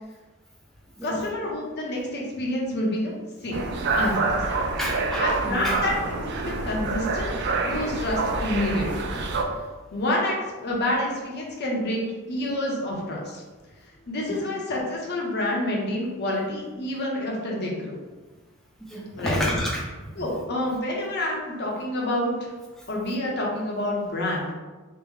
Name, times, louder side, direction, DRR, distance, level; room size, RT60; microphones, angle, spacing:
voice 1, 1.0-3.1 3.4-4.4 5.2-7.3 7.6-9.1 9.9-10.4 10.6-12.0 12.3-13.4 14.1-18.0 19.2-19.4 20.1-22.3 22.9-24.5, left 1 dB, 50° left, -2 dB, 0.7 m, -28 dB
sound 1, 3.5-9.4, right 3 dB, 50° right, 0.3 m, -27 dB
voice 2, 4.8-5.8 18.8-19.8, equal, ahead, -4 dB, 0.5 m, -29 dB
3.5 x 2.1 x 3.1 m, 1.3 s
head